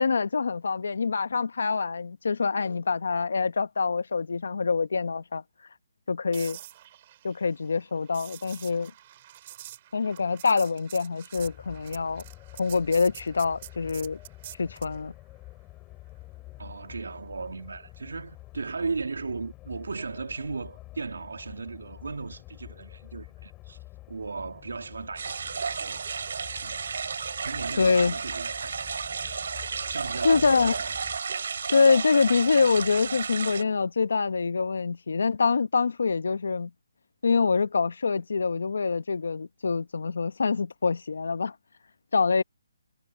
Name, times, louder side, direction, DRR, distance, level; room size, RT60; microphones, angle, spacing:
voice 1, 0.0-5.4 6.1-6.6 7.2-8.9 9.9-12.2 12.6-14.2 14.6-15.1 27.8-28.2 30.2-30.8 31.7-36.7 37.2-41.5 42.1-42.4, left 4 dB, 70° left, 1.3 m, -25 dB
sound 1, 6.3-15.0 19.2-19.4, right 13 dB, 25° right, 7.5 m, -46 dB
sound 2, 11.3-31.2, left 18 dB, 15° left, 4.0 m, -48 dB
voice 2, 16.6-23.8 24.1-26.0 26.6-26.9 27.4-29.1 29.9-30.9, right 4 dB, 85° right, 2.7 m, -36 dB
sound 3, 25.2-33.6, right 5 dB, 55° right, 3.8 m, -32 dB
hypercardioid pair, 170°, 0 cm